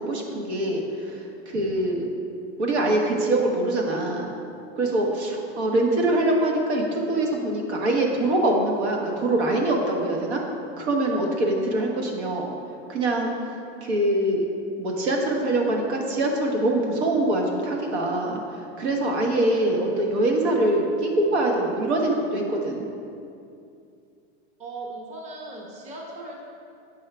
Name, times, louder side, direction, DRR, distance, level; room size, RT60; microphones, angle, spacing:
voice 1, 0.0-2.1 2.6-4.3 4.8-10.4 10.8-12.5 12.9-13.3 13.8-14.4 14.8-22.9, right 1 dB, 75° right, 1 dB, 1.3 m, -24 dB
voice 2, 24.6-26.4, right 2 dB, 20° right, -2 dB, 0.9 m, -38 dB
8.0 x 5.5 x 3.3 m, 2.6 s
supercardioid pair, 140°, 33 cm